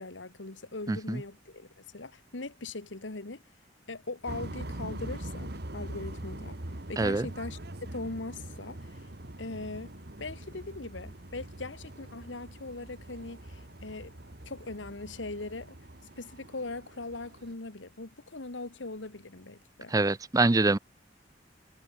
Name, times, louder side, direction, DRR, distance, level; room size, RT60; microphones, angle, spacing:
voice 1, 0.0-3.4 3.9-7.6 7.9-9.1 9.4-9.9 10.2-14.1 14.4-15.8 16.2-19.9, left 2 dB, 85° left, 1.7 m, -40 dB
voice 2, 0.9-1.2 7.0-7.2 19.9-20.8, right 2 dB, 20° right, 0.5 m, -25 dB
sound 1, 4.3-17.5, right 1 dB, 60° right, 2.3 m, -43 dB
head